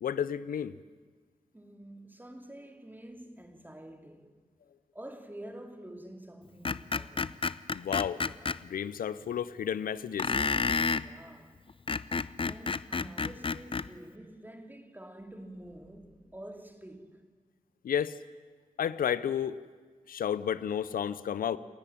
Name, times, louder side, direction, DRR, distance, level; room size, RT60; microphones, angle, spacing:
voice 1, 0.0-0.7 7.7-8.2 8.6-10.3 17.8-18.1 18.8-19.6 20.1-21.6, left 8 dB, 90° left, 0.6 m, -31 dB
voice 2, 1.5-4.4 4.9-7.4 10.9-11.6 12.5-17.2, right 1 dB, 15° right, 2.6 m, -48 dB
Screech, 6.6-8.6 10.2-11.1 11.7-13.9, left 4 dB, 40° left, 0.6 m, -30 dB
28.5 x 10.0 x 10.0 m
cardioid pair, 45°, 14 cm